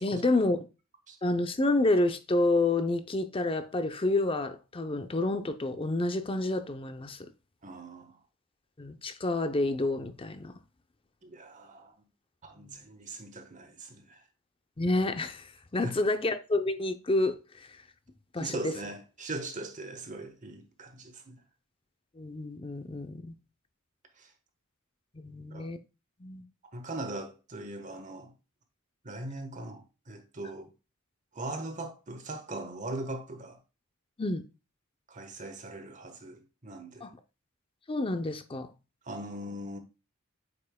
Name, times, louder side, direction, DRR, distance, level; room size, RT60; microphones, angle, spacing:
voice 1, 0.0-0.7 1.2-7.2 8.8-10.5 12.6-12.7 14.8-15.5 15.7-17.3 18.3-18.7 22.2-23.3 25.2-25.8 26.2-26.4 34.2-34.4 37.0-37.1 37.9-38.7, left 2 dB, 25° left, 0.6 m, -29 dB
voice 2, 7.6-8.2 11.2-11.9 12.4-14.2 15.8-15.9 18.4-21.4 24.2-24.3 25.5-25.7 26.7-28.3 29.0-30.7 31.3-33.6 35.1-37.1 39.0-39.8, right 2 dB, 35° right, 1.2 m, -40 dB
8.2 x 5.5 x 2.2 m
head